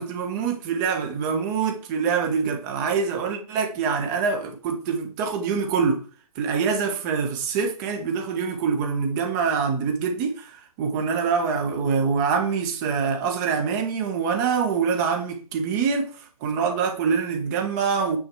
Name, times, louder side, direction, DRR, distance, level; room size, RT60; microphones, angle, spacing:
voice 1, 0.0-6.0 6.3-18.2, right 5 dB, 30° right, 1.6 m, -25 dB
8.7 x 6.4 x 4.8 m
figure-of-eight pair, 140°, 19 cm